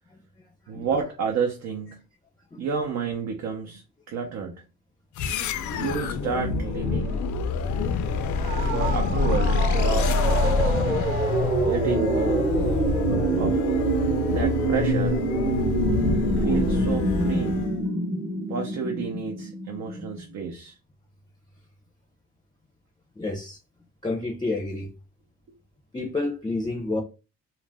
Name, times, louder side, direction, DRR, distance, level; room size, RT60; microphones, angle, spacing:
voice 1, 0.7-2.0 2.6-4.6 5.7-7.3 8.6-11.0 11.6-12.5 13.4-13.6 14.3-15.2 16.3-17.7 18.5-20.8, right 6 dB, 70° right, 0.6 m, -30 dB
sound 1, 5.2-17.8, left 4 dB, 75° left, 0.5 m, -26 dB
Retro ufo landing, 8.4-20.2, right 3 dB, 25° right, 0.7 m, -26 dB
voice 2, 23.2-23.6 24.0-24.9 25.9-27.0, left 2 dB, 15° left, 0.5 m, -29 dB
2.4 x 2.1 x 3.4 m
cardioid pair, 90°, 30 cm